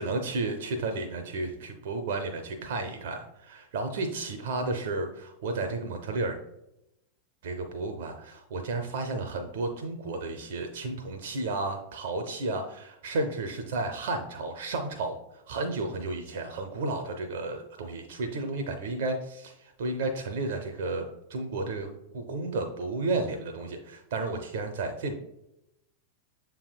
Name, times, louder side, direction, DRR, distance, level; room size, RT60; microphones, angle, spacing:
voice 1, 0.0-6.4 7.4-25.1, right 2 dB, 55° right, 5 dB, 0.5 m, -32 dB
6.9 x 3.3 x 2.3 m, 0.85 s
figure-of-eight pair, 90°, 0 cm